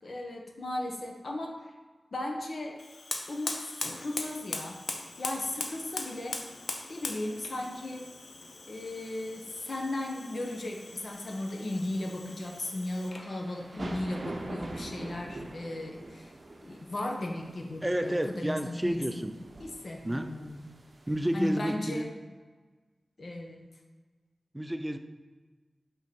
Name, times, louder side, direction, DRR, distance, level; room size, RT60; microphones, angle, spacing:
voice 1, 0.0-1.7 2.1-2.8 3.3-4.8 5.2-6.4 6.9-8.1 8.7-16.3 16.6-19.2 19.6-20.6 21.3-22.1 23.2-23.6, left 1 dB, 55° left, 1 dB, 1.0 m, -36 dB
Fire, 2.8-13.3, left 3 dB, 80° left, 0.7 m, -41 dB
sound 1, 10.8-21.7, right 2 dB, 50° right, 0.7 m, -45 dB
voice 2, 17.8-19.3 20.0-20.4 21.1-22.1 24.5-25.0, right 1 dB, 15° right, 8 dB, 0.4 m, -30 dB
5.3 x 3.7 x 5.3 m, 1.3 s
wide cardioid pair, 115°, 0 cm